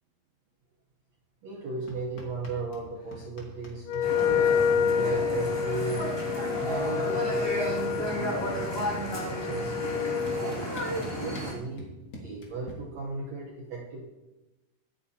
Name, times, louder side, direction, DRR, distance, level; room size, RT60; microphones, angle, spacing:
voice 1, 1.4-4.5 4.9-7.8 8.2-8.8 9.3-10.7 11.2-11.9 12.2-14.0, right 4 dB, 70° right, -2 dB, 1.7 m, -36 dB
sound 1, 1.9-2.9 3.1-4.9 6.1-6.2 6.5-6.9 7.2-8.5 9.4-9.5 10.0-12.7, equal, 40° left, 1.8 m, -45 dB
Wind instrument woodwind instrument, 3.8-10.5, left 7 dB, 85° left, 1.8 m, -28 dB
sound 2, 4.0-11.5, equal, 10° left, 1.1 m, -33 dB
23.0 x 8.5 x 2.8 m, 1.1 s
omnidirectional pair, 4.2 m